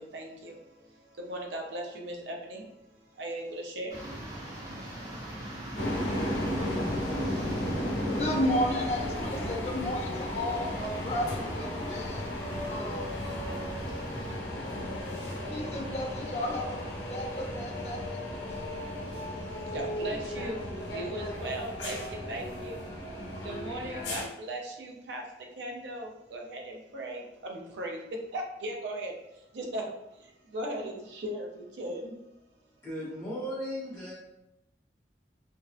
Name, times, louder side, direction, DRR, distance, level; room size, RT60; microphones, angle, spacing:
voice 1, 0.0-7.4 8.7-8.8 19.0-23.1 23.4-28.0 28.3-32.1, right 1 dB, 80° right, 1 dB, 0.5 m, -39 dB
sound 1, 3.9-8.3 8.7-14.4, right 1 dB, 20° right, 0.5 m, -43 dB
sound 2, 5.8-24.2, left 1 dB, 90° left, 0.7 m, -34 dB
voice 2, 8.2-12.3 12.6-13.2 15.5-16.8 17.1-18.0 18.3-18.6, left 1 dB, 35° left, -1 dB, 0.4 m, -33 dB
voice 3, 32.8-34.1, equal, 15° left, -8 dB, 0.8 m, -36 dB
2.5 x 2.0 x 2.4 m, 0.89 s
head